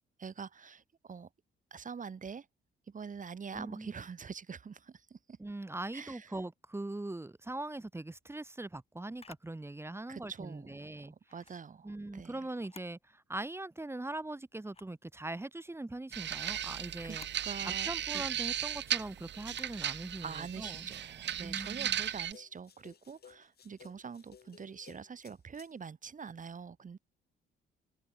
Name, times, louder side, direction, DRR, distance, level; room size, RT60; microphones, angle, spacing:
voice 1, 0.2-1.3 1.7-2.5 2.9-5.4 5.9-6.3 10.1-12.4 17.0-17.2 17.4-18.2 20.2-27.0, right 6 dB, 40° right, 5.6 m, -45 dB
voice 2, 3.5-3.9 5.4-11.1 11.8-17.3 17.6-20.9 21.4-22.0, right 2 dB, 10° right, 1.6 m, -41 dB
Camera, 9.2-9.5 11.2-11.6 12.5-13.0 13.4-13.5 14.6-15.0 17.0-17.4 19.5-19.8, left 4 dB, 30° left, 2.5 m, -56 dB
sound 1, 16.1-22.3, right 10 dB, 65° right, 1.8 m, -36 dB
sound 2, 20.6-25.7, left 8 dB, 55° left, 7.7 m, -59 dB
open air
cardioid pair, 90°, 20 cm